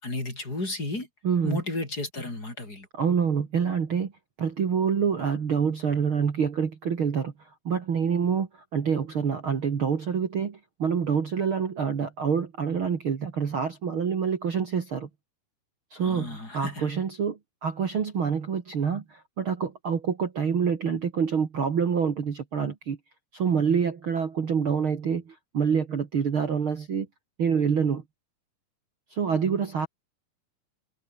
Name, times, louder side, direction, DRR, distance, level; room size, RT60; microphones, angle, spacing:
voice 1, 0.0-1.1 1.4-2.9 16.0-16.9, left 2 dB, 25° left, 6.2 m, -33 dB
voice 2, 1.2-1.6 3.0-4.1 4.4-7.3 7.6-15.1 15.9-23.0 23.3-27.1 27.4-28.0 29.1-29.9, right 6 dB, 45° right, 2.5 m, -26 dB
omnidirectional pair, 3.8 m